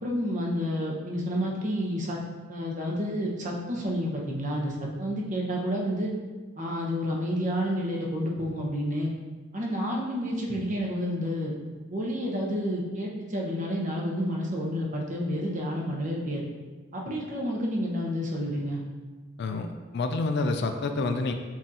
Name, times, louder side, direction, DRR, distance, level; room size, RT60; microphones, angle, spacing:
voice 1, 0.0-2.2 2.5-6.1 6.6-9.1 9.5-11.5 11.9-16.4 16.9-18.8, equal, 40° right, -2 dB, 0.8 m, -30 dB
voice 2, 19.9-21.3, left 3 dB, 55° left, 6 dB, 0.3 m, -27 dB
7.3 x 2.6 x 2.8 m, 1.3 s
head